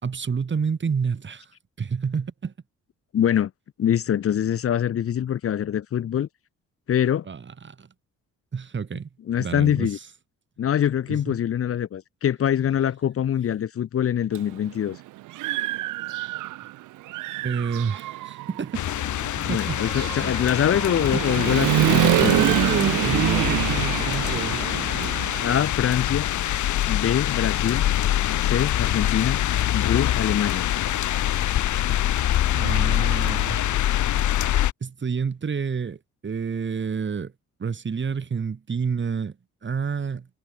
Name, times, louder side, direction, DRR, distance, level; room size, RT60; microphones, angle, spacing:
voice 1, 0.0-1.5 1.8-2.5 7.3-7.9 8.5-9.1 9.4-9.9 11.1-11.3 17.4-18.8 19.4-19.8 20.2-20.3 21.1-21.2 21.7-25.2 32.5-33.6 34.0-34.1 34.8-37.3 37.6-39.3 39.6-40.3, right 6 dB, 40° right, 4.1 m, -29 dB
voice 2, 3.1-3.5 3.8-6.3 6.9-7.3 9.3-10.0 10.6-15.0 19.4-22.4 25.4-26.3 26.9-27.8 28.4-29.4 29.7-30.6, left 9 dB, 50° left, 0.9 m, -24 dB
Human voice / Motorcycle, 14.4-14.5 14.9-16.7 17.1-25.7, right 17 dB, 90° right, 1.2 m, -26 dB
sound 1, 18.7-34.7, left 12 dB, 75° left, 2.4 m, -24 dB
cardioid pair, 90°, 30 cm